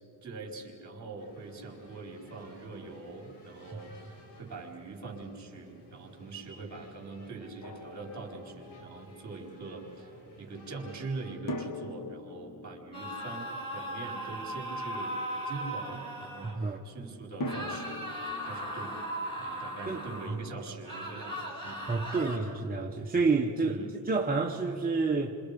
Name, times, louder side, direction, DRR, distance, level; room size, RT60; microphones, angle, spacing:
voice 1, 0.2-15.1 15.4-19.0 19.4-21.9 23.6-24.0, right 3 dB, 40° right, 1 dB, 4.8 m, -43 dB
sound 1, 1.2-11.4, equal, 80° left, 7.3 m, -55 dB
Drum, 7.6-9.0 11.5-14.5 17.4-20.3, left 1 dB, 50° left, 1.7 m, -42 dB
Iwan Gabovitch - Scream, 12.9-16.6 17.4-20.4 20.8-22.4, equal, 10° left, 5.8 m, -38 dB
voice 2, 16.4-16.8 19.4-19.5 19.9-20.0 20.3-20.4 21.9-23.8 24.0-25.4, right 4 dB, 20° right, 0 dB, 1.1 m, -29 dB
29.5 x 26.5 x 5.3 m, 2.8 s
cardioid pair, 135°, 42 cm